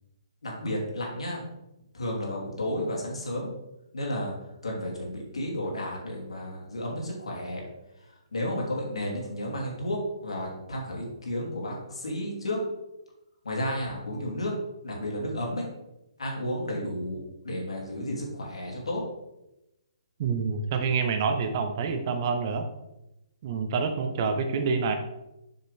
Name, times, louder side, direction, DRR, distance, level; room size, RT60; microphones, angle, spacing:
voice 1, 0.4-1.4 1.9-3.5 3.9-4.3 4.6-7.6 8.3-12.6 13.4-14.5 14.8-15.7 16.2-19.0, left 1 dB, 80° left, -2 dB, 2.8 m, -32 dB
voice 2, 20.2-22.7 23.4-24.9, right 5 dB, 45° right, 7 dB, 1.0 m, -27 dB
7.2 x 6.6 x 3.5 m, 0.91 s
hypercardioid pair, 140°, 3 cm